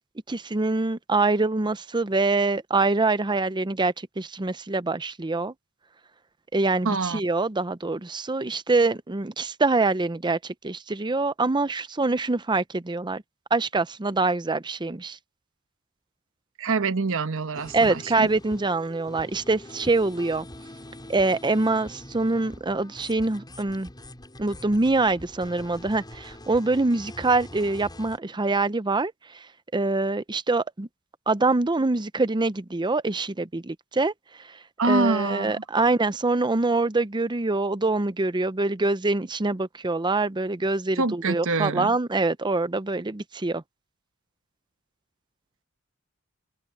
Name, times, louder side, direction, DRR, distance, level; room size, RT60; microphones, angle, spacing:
voice 1, 0.3-5.5 6.5-13.2 13.5-15.2 17.7-20.5 21.1-23.9 24.4-29.1 29.7-30.9 31.3-34.1 34.9-43.6, right 3 dB, 20° right, 0.6 m, -25 dB
voice 2, 6.8-7.2 16.6-18.3 34.8-35.6 40.9-42.0, right 3 dB, 65° right, 1.2 m, -25 dB
sound 1, 17.5-28.2, left 1 dB, 20° left, 6.9 m, -44 dB
head